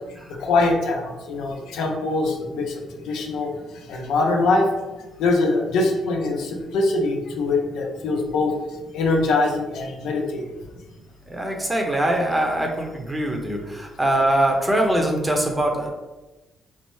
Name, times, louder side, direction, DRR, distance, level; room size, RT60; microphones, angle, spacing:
voice 1, 0.4-3.5 3.9-4.7 5.2-8.6 8.9-10.5, left 3 dB, 85° left, 1 dB, 0.5 m, -23 dB
voice 2, 11.3-13.6 14.0-15.9, right 1 dB, 15° right, 1 dB, 0.7 m, -22 dB
4.2 x 2.0 x 3.1 m, 1.1 s
cardioid pair, 90°, 0 cm